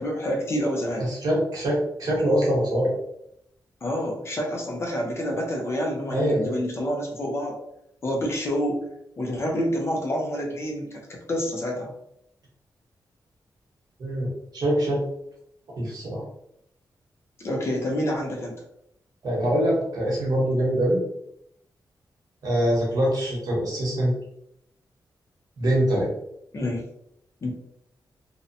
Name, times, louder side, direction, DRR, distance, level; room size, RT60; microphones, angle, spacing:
voice 1, 0.0-1.1 3.8-7.6 8.0-8.8 9.2-11.9 17.4-18.5 26.5-26.8 27.4-27.5, equal, 35° left, 0 dB, 0.5 m, -28 dB
voice 2, 1.1-2.9 6.1-6.6 14.0-15.0 15.8-16.2 19.2-21.0 22.4-24.1 25.6-26.1, equal, 60° right, -4 dB, 1.0 m, -24 dB
2.7 x 2.1 x 2.6 m, 0.77 s
wide cardioid pair, 180°, 7 cm